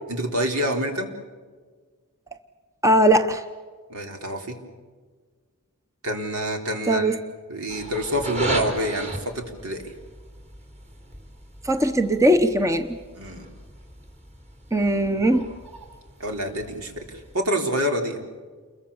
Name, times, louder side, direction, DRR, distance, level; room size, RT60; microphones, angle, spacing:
voice 1, 0.1-1.1 3.9-4.6 6.0-7.2 7.5-9.9 13.1-13.5 16.2-18.2, equal, 75° right, 4 dB, 4.0 m, -27 dB
voice 2, 2.8-3.4 6.9-7.2 11.6-12.9 14.7-15.5, right 1 dB, 15° right, 8 dB, 1.0 m, -19 dB
sound 1, 7.7-17.3, right 1 dB, 30° right, 4.2 m, -37 dB
29.0 x 22.5 x 7.3 m, 1.5 s
head